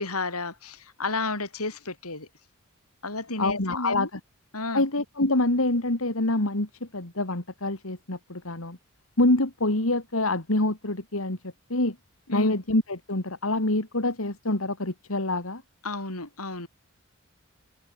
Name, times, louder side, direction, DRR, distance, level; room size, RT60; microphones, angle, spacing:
voice 1, 0.0-2.3 3.0-4.1 4.5-4.8 12.3-12.5 15.8-16.7, left 3 dB, 90° left, 7.7 m, -32 dB
voice 2, 3.4-4.2 4.7-8.8 9.2-11.4 11.7-12.0 12.3-15.6, left 2 dB, 70° left, 2.7 m, -26 dB
head